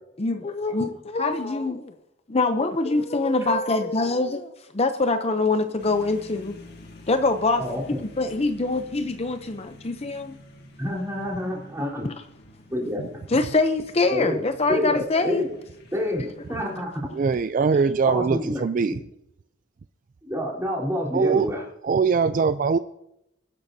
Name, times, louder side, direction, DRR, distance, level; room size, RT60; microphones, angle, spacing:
voice 1, 0.2-1.9 2.3-6.6 7.1-10.3 12.0-12.2 13.3-15.4, left 3 dB, 35° left, 8 dB, 0.6 m, -24 dB
sound 1, 5.8-17.5, left 1 dB, 55° left, 2.0 m, -48 dB
voice 2, 10.8-12.1 12.7-13.0 14.1-14.4 14.7-15.5 15.9-17.1 18.1-18.9 20.2-21.6, left 1 dB, 15° right, -3 dB, 3.9 m, -28 dB
voice 3, 17.1-19.0 21.1-21.5 21.8-22.8, right 5 dB, 45° right, 12 dB, 0.3 m, -22 dB
21.0 x 11.0 x 2.7 m, 0.83 s
head